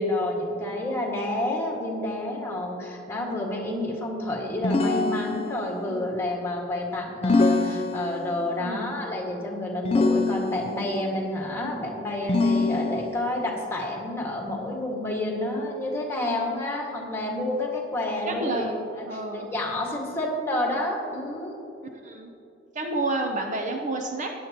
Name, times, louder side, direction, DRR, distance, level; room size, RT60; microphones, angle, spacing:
voice 1, 0.0-18.7 19.3-21.6, left 1 dB, 15° left, -2 dB, 1.8 m, -29 dB
sound 1, 4.6-5.8 7.2-8.4 9.8-10.9 12.3-13.3, left 3 dB, 30° left, 0.5 m, -24 dB
voice 2, 8.6-8.9 18.3-19.5 22.0-22.3 22.7-24.4, right 2 dB, 40° right, 3 dB, 0.7 m, -30 dB
16.0 x 10.0 x 3.0 m, 2.7 s
head